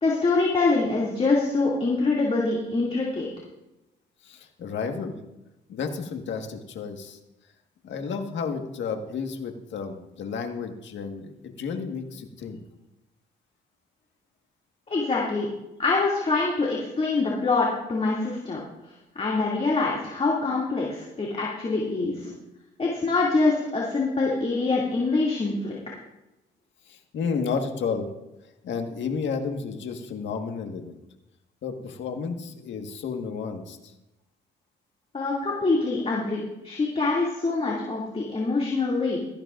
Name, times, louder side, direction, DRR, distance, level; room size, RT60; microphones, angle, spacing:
voice 1, 0.0-3.3 14.9-15.5 15.8-18.6 19.2-22.3 22.8-25.8 35.1-39.2, left 3 dB, 30° left, -4 dB, 2.6 m, -25 dB
voice 2, 4.2-5.2 5.7-7.2 7.8-11.3 11.6-12.6 26.9-28.1 28.6-30.9 31.6-33.9, left 5 dB, 70° left, 4 dB, 1.7 m, -32 dB
17.0 x 14.0 x 2.6 m, 0.95 s
cardioid pair, 90°, 20 cm